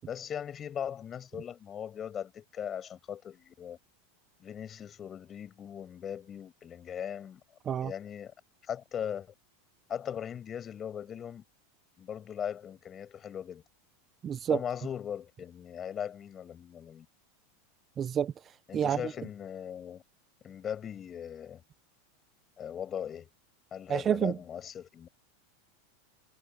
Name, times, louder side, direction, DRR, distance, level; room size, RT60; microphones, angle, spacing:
voice 1, 0.1-3.8 4.4-7.4 7.8-8.3 8.6-9.3 9.9-11.4 12.0-13.6 14.5-17.1 18.7-20.0 20.4-21.6 22.6-23.3 23.7-25.1, left 9 dB, 20° left, 7.4 m, -39 dB
voice 2, 14.2-14.6 18.0-18.3 18.7-19.0 23.9-24.3, right 8 dB, 20° right, 0.4 m, -28 dB
supercardioid pair, 155°, 0 cm